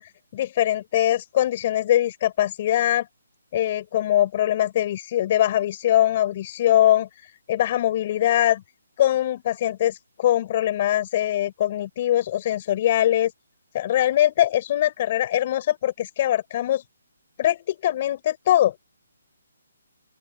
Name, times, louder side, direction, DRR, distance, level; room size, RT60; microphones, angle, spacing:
voice 1, 0.0-3.1 3.5-8.6 9.0-13.3 13.7-16.8 17.4-18.7, left 12 dB, 25° left, 7.8 m, -22 dB
open air
hypercardioid pair, 175°, 0 cm